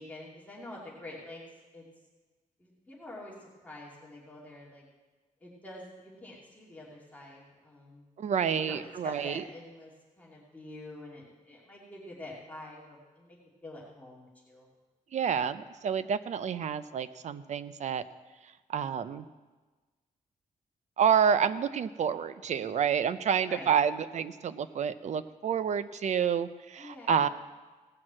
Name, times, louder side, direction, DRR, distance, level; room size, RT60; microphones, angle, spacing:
voice 1, 0.0-1.4 1.7-1.8 2.6-4.9 5.4-8.0 8.5-9.9 10.2-13.4 13.6-14.7 23.4-23.7 26.8-27.3, left 1 dB, 10° left, -5 dB, 2.6 m, -47 dB
voice 2, 8.2-9.4 15.1-18.0 18.7-19.2 21.0-27.3, right 7 dB, 55° right, 13 dB, 0.6 m, -29 dB
17.5 x 6.3 x 7.6 m, 1.3 s
wide cardioid pair, 155°, 14 cm